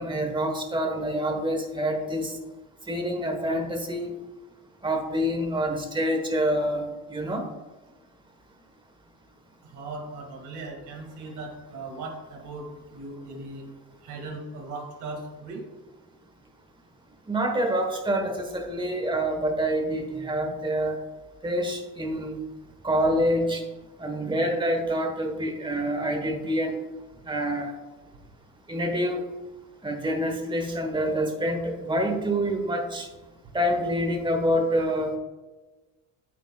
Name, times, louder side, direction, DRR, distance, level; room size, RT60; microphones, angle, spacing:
voice 1, 0.0-2.3 2.9-4.1 4.8-6.8 7.1-7.5 17.3-21.0 21.4-22.4 22.8-23.6 24.0-26.8 27.3-27.7 28.7-29.2 29.8-33.1 33.5-35.1, equal, 15° right, 4 dB, 1.2 m, -26 dB
voice 2, 9.7-12.6 12.9-13.6 14.0-15.6, right 3 dB, 65° right, 1 dB, 2.1 m, -38 dB
9.5 x 8.2 x 2.3 m, 1.2 s
cardioid pair, 135°, 32 cm